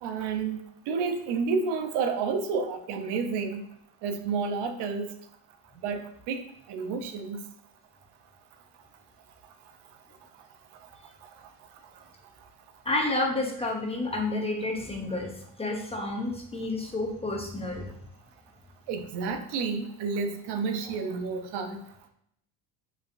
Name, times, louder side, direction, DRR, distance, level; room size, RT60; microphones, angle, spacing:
voice 1, 0.0-3.6 4.0-5.1 5.8-6.4 6.7-7.4 18.9-21.8, right 5 dB, 65° right, 7 dB, 0.6 m, -30 dB
voice 2, 12.8-15.3 15.6-18.0, left 2 dB, 15° left, 1 dB, 0.6 m, -30 dB
4.6 x 3.3 x 2.5 m, 0.73 s
cardioid pair, 110°, 45 cm